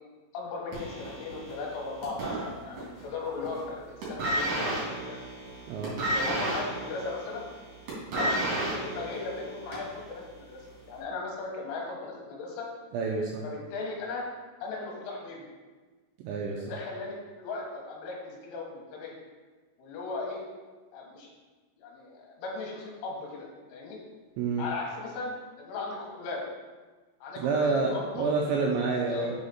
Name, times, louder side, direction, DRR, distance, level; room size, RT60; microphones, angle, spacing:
voice 1, 0.3-5.2 6.1-7.4 8.2-12.7 13.4-14.3 14.6-15.5 16.6-19.2 19.8-20.4 20.9-21.3 21.8-24.0 24.6-26.4 27.2-28.4 28.9-29.3, left 3 dB, 75° left, -1 dB, 3.7 m, -37 dB
sound 1, 0.7-3.1 3.3-3.7 4.0-10.0 10.8-10.9, right 1 dB, 50° right, 3.1 m, -32 dB
voice 2, 12.9-13.4 16.2-16.6 24.4-24.6 27.4-29.3, right 4 dB, 90° right, -1 dB, 2.6 m, -28 dB
6.9 x 5.0 x 4.2 m, 1.3 s
omnidirectional pair, 5.9 m